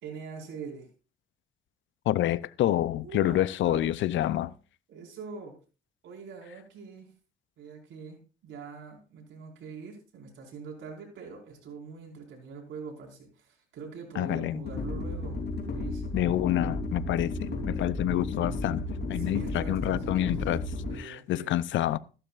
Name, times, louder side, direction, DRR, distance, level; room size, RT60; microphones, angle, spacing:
voice 1, 0.0-0.9 2.8-3.9 4.9-5.5 6.0-7.1 7.6-15.4 15.7-16.2 17.4-17.6 19.2-20.4 20.9-21.6, right 5 dB, 75° right, 4.8 m, -43 dB
voice 2, 2.1-4.5 14.2-14.6 16.1-20.6 21.0-22.0, left 13 dB, 70° left, 0.6 m, -28 dB
sound 1, 14.6-21.0, left 2 dB, 55° left, 3.3 m, -33 dB
14.5 x 12.0 x 2.5 m
cardioid pair, 90°, 20 cm